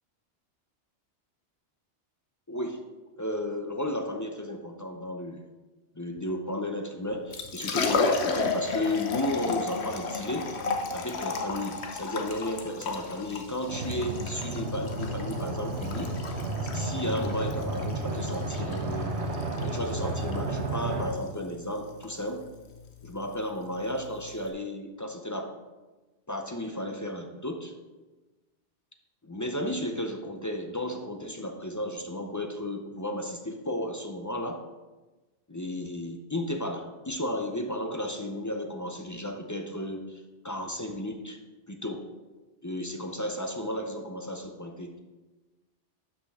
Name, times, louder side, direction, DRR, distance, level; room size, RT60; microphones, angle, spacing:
voice 1, 2.5-2.8 3.2-5.5 6.0-10.5 10.9-19.2 19.6-22.4 23.0-25.5 26.3-27.7 29.2-34.6 35.5-41.4 41.7-42.1 42.6-44.9, left 1 dB, 25° left, 4 dB, 0.4 m, -33 dB
Liquid, 7.1-24.5, left 4 dB, 70° left, 1.1 m, -34 dB
sound 1, 13.7-21.1, right 2 dB, 70° right, 1.3 m, -32 dB
11.5 x 5.8 x 3.6 m, 1.2 s
omnidirectional pair, 1.2 m